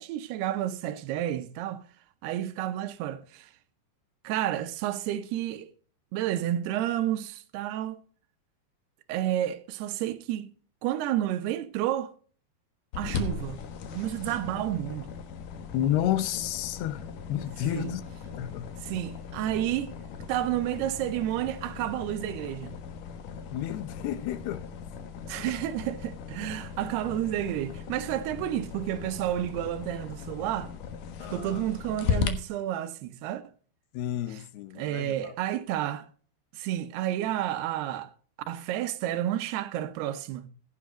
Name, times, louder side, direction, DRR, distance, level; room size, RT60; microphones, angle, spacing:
voice 1, 0.0-1.8 2.2-3.5 4.2-5.7 6.1-8.0 9.1-10.5 10.8-12.1 13.0-13.6 13.9-15.1 17.7-17.9 18.8-19.9 20.3-22.8 25.3-30.7 31.2-33.4 34.3-34.4 34.8-36.1 36.5-38.1 38.5-40.5, right 12 dB, 85° right, 3.0 m, -30 dB
sound 1, 12.9-32.3, left 6 dB, 65° left, 2.6 m, -38 dB
voice 2, 15.7-17.0 17.3-18.0 18.4-18.7 23.5-24.6 25.3-25.6 27.0-27.1 31.2-31.6 33.9-35.3, left 11 dB, 80° left, 3.1 m, -31 dB
16.0 x 9.0 x 3.8 m
omnidirectional pair, 4.6 m